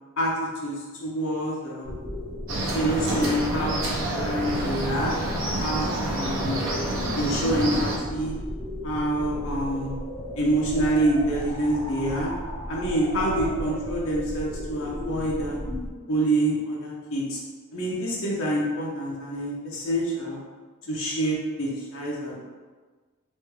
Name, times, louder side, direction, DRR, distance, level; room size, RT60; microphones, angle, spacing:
voice 1, 1.0-1.9 2.5-3.8 4.1-5.1 5.6-6.6 7.2-8.4 8.8-9.9 10.4-12.3 12.7-15.6 16.1-17.4 17.7-20.4 20.9-22.4, right 1 dB, 60° left, -4 dB, 0.8 m, -26 dB
sound 1, 1.8-15.9, left 1 dB, 5° left, 0.9 m, -35 dB
sound 2, 2.5-8.0, right 1 dB, 60° right, 0.6 m, -28 dB
3.1 x 2.2 x 3.1 m, 1.4 s
head